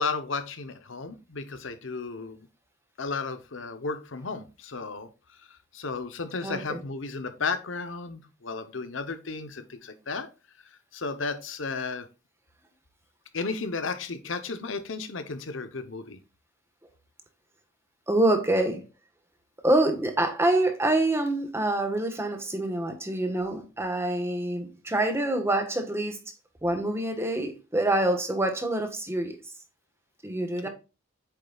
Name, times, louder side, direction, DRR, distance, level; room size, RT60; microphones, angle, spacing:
voice 1, 0.0-2.4 3.0-5.1 5.5-10.3 10.9-12.1 13.3-16.2, left 4 dB, 70° left, 0.9 m, -33 dB
voice 2, 6.4-6.8 18.1-18.8 19.6-26.2 26.6-29.4 30.2-30.7, right 1 dB, 15° right, 1.4 m, -26 dB
8.4 x 6.6 x 2.4 m
head